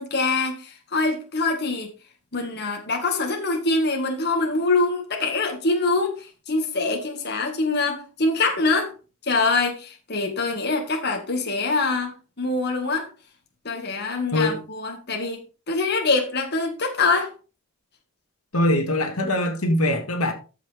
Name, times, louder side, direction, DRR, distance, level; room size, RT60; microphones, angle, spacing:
voice 1, 0.0-1.9 2.3-8.9 9.2-13.1 13.6-15.4 15.7-17.3, left 3 dB, 50° left, 1.8 m, -24 dB
voice 2, 18.5-20.3, left 1 dB, 75° left, 1.9 m, -22 dB
14.0 x 5.9 x 3.5 m
head